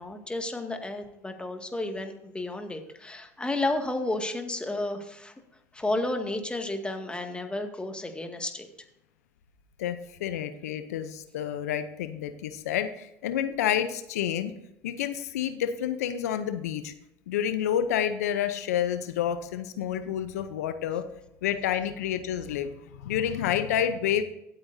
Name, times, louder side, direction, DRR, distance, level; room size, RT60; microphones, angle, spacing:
voice 1, 0.0-5.3 5.7-8.7, left 2 dB, 10° left, 5 dB, 2.0 m, -32 dB
voice 2, 9.8-14.5 14.8-16.9 17.3-21.0 21.4-24.2, left 10 dB, 90° left, 11 dB, 0.7 m, -29 dB
16.5 x 8.7 x 2.7 m, 0.86 s
hypercardioid pair, 75°, 8 cm